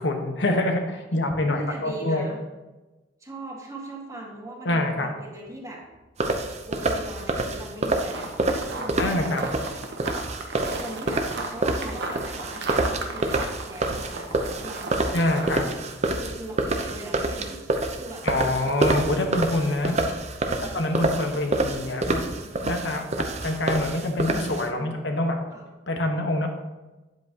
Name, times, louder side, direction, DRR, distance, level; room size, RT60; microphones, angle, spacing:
voice 1, 0.0-2.3 4.6-5.1 9.0-9.4 15.1-15.6 18.2-20.0 20.6-22.2 22.6-23.1 23.4-25.4 25.9-26.5, left 1 dB, 70° left, 3 dB, 1.3 m, -25 dB
voice 2, 1.1-2.4 3.2-5.8 6.7-9.7 10.7-15.2 16.2-18.3 20.4-20.8 24.8-25.0 25.5-25.7, right 1 dB, 20° right, -2 dB, 1.8 m, -40 dB
sound 1, 6.2-24.7, right 2 dB, 40° right, 0.8 m, -27 dB
sound 2, 8.1-15.6, right 3 dB, 65° right, 1.0 m, -35 dB
9.4 x 7.9 x 2.9 m, 1.1 s
head